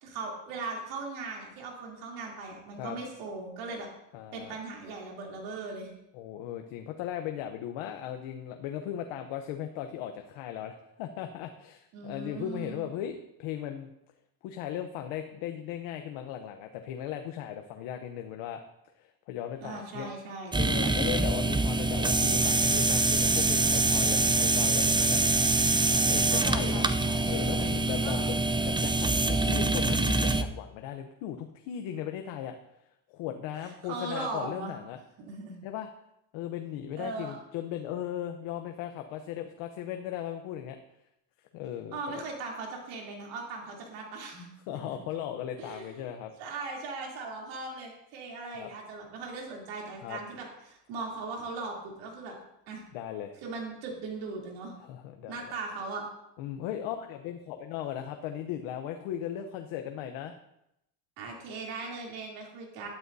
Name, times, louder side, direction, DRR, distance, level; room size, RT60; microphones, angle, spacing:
voice 1, 0.0-3.9 4.3-5.9 11.9-12.8 19.6-20.6 26.0-27.3 27.8-28.2 33.8-34.7 35.2-35.6 37.0-37.4 41.9-44.9 45.6-45.9 46.4-52.3 52.7-52.8 53.4-54.7 55.3-56.0 61.2-62.9, right 3 dB, 90° right, -1 dB, 3.2 m, -39 dB
voice 2, 4.1-4.6 6.1-13.9 14.4-18.6 19.0-20.1 20.5-25.6 25.9-26.9 27.3-28.4 28.6-32.5 33.1-35.0 35.6-35.9 36.3-40.8 41.5-42.2 44.7-46.3 48.6-48.7 50.0-50.2 52.9-53.4 54.8-55.4 56.4-60.4, left 10 dB, 85° left, 5 dB, 0.9 m, -37 dB
sound 1, 20.5-30.4, right 2 dB, 10° right, 0.5 m, -25 dB
12.0 x 12.0 x 2.7 m, 0.83 s
supercardioid pair, 85°, 46 cm